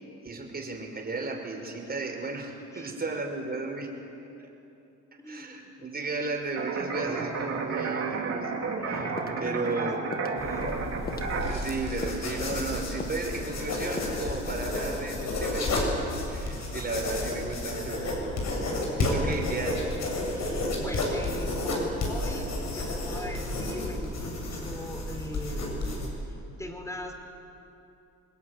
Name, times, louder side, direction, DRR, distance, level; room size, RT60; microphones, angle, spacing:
voice 1, 0.2-3.9 4.4-4.5 5.2-8.5 8.8-10.1 11.5-15.9 16.2-18.4 18.7-19.9, right 3 dB, 30° right, 2 dB, 6.1 m, -34 dB
voice 2, 5.2-5.7 9.4-10.8 19.2-19.7 20.3-25.9 26.2-27.1, equal, 10° left, 3 dB, 5.1 m, -41 dB
sound 1, 6.6-11.5, right 4 dB, 55° right, 5.0 m, -32 dB
sound 2, 9.2-9.8 10.1-10.3 10.6-10.8 11.1-11.7 12.0-12.3 12.5-12.7 13.0-13.2 13.5-13.7 14.0-14.1, left 3 dB, 30° left, 2.0 m, -39 dB
sound 3, 10.4-26.1, left 1 dB, 65° left, 8.0 m, -31 dB
26.5 x 21.0 x 9.8 m, 2.7 s
cardioid pair, 90°, 30 cm